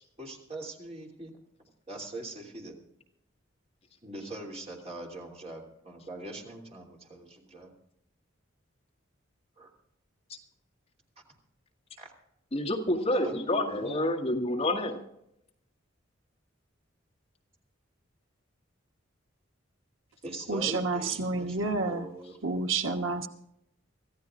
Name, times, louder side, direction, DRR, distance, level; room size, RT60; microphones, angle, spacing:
voice 1, 0.2-1.3 1.9-2.8 4.0-7.7 9.6-9.7 12.0-12.1 13.2-14.3 20.2-22.4, right 1 dB, 30° right, 2.9 m, -41 dB
voice 2, 12.5-15.0, left 1 dB, 30° left, 1.9 m, -28 dB
voice 3, 20.5-22.1 22.4-23.3, right 3 dB, 90° right, 1.2 m, -29 dB
25.0 x 14.5 x 2.5 m
head